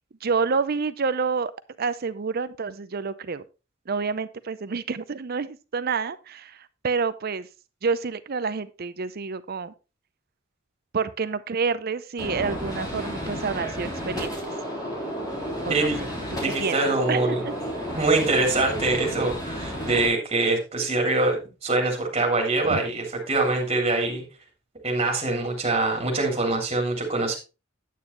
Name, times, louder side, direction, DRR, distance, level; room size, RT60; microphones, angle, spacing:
voice 1, 0.2-1.5 1.8-3.4 3.9-7.5 7.8-9.7 10.9-14.3 15.7-15.9 16.4-16.8 17.1-17.5 22.7-22.8, right 5 dB, 45° right, 14 dB, 0.6 m, -28 dB
Gunshot gunfire, 12.2-20.1, equal, 20° left, 3.4 m, -32 dB
voice 2, 15.7-16.0 16.3-17.4 17.9-24.2 24.8-27.4, right 2 dB, 30° right, 0 dB, 3.1 m, -24 dB
9.3 x 8.6 x 3.2 m, 0.30 s
head